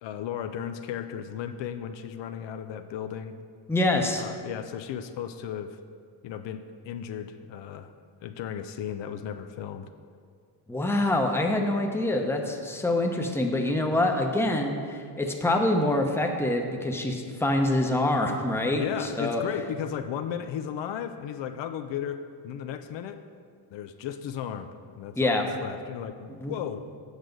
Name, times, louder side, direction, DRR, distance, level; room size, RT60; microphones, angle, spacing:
voice 1, 0.0-3.4 4.1-5.8 6.2-7.9 8.2-9.9 18.8-23.2 23.7-24.7 25.0-26.8, left 9 dB, 70° left, 8 dB, 0.6 m, -35 dB
voice 2, 3.7-4.2 10.7-19.4 25.2-25.4 26.4-26.5, left 1 dB, 5° left, 2 dB, 0.8 m, -25 dB
8.2 x 6.3 x 5.2 m, 2.1 s
cardioid pair, 110°, 45 cm